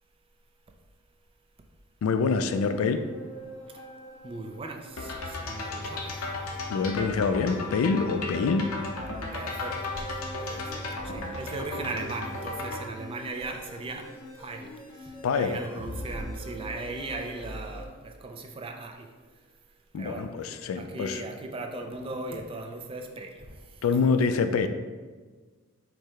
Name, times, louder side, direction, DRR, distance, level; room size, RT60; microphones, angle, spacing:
voice 1, 2.0-3.0 6.7-8.7 15.2-15.6 19.9-21.2 23.8-24.7, left 5 dB, 70° left, 9 dB, 0.3 m, -25 dB
sound 1, 2.4-17.9, equal, 25° left, 0.6 m, -44 dB
voice 2, 4.2-6.1 9.3-10.1 10.5-14.1 14.4-14.7 15.0-19.1 20.0-23.6, right 2 dB, 25° right, 3 dB, 0.4 m, -38 dB
sound 2, 5.0-12.8, left 2 dB, 90° left, 0.7 m, -35 dB
4.6 x 2.1 x 4.7 m, 1.4 s
head